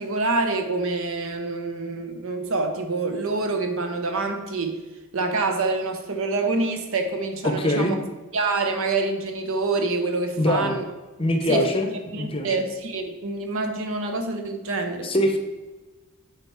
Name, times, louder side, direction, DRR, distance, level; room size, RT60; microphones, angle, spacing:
voice 1, 0.0-4.8 5.1-7.9 8.3-10.8 11.5-15.1, right 3 dB, 65° right, 5 dB, 0.9 m, -26 dB
voice 2, 7.4-7.9 10.4-10.8 11.2-11.9 12.1-12.5 15.0-15.4, left 1 dB, 25° left, 5 dB, 0.8 m, -22 dB
8.3 x 4.4 x 4.8 m, 1.2 s
head